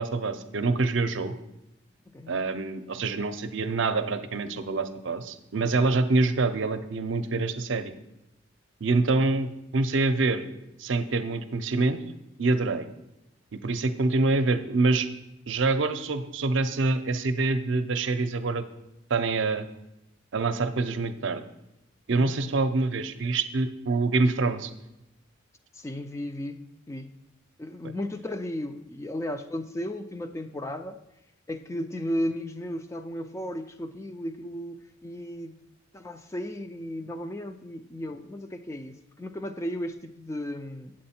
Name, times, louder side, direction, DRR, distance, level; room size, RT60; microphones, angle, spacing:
voice 1, 0.0-1.3 2.3-7.9 8.8-10.5 10.8-12.0 12.4-12.9 13.5-15.1 15.5-18.6 19.1-19.6 20.3-21.4 22.1-24.7, right 3 dB, 65° right, 9 dB, 0.6 m, -26 dB
voice 2, 25.7-27.1 27.6-31.0 31.5-35.6 35.9-40.9, left 1 dB, 15° left, 8 dB, 0.3 m, -35 dB
8.6 x 7.5 x 4.3 m, 0.91 s
head